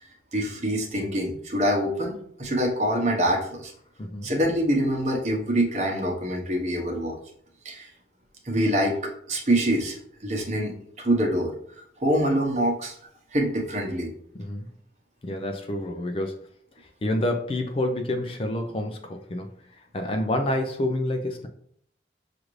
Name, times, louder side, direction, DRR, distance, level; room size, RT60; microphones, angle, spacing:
voice 1, 0.3-2.1 2.4-3.7 4.2-7.2 7.6-7.9 8.4-13.0 13.3-14.1, equal, 40° right, 1 dB, 0.9 m, -25 dB
voice 2, 4.0-4.3 14.3-14.7 15.2-16.4 16.8-19.5 19.9-21.5, left 1 dB, 30° left, 4 dB, 0.4 m, -28 dB
6.4 x 2.5 x 3.1 m, 0.64 s
head